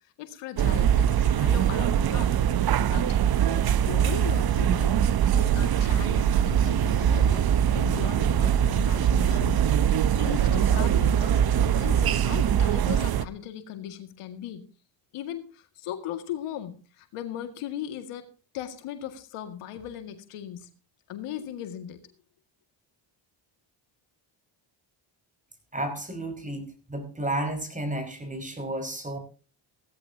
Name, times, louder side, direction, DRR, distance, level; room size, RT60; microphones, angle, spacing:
voice 1, 0.2-2.4 2.6-3.2 3.5-4.9 5.3-14.6 15.1-18.2 18.5-20.7 21.1-22.0, left 10 dB, 90° left, 7 dB, 2.1 m, -38 dB
sound 1, 0.6-13.2, right 9 dB, 45° right, 0.8 m, -22 dB
voice 2, 25.7-29.2, right 1 dB, 15° right, 7 dB, 5.2 m, -32 dB
17.0 x 15.0 x 2.8 m, 0.35 s
cardioid pair, 90°, 50 cm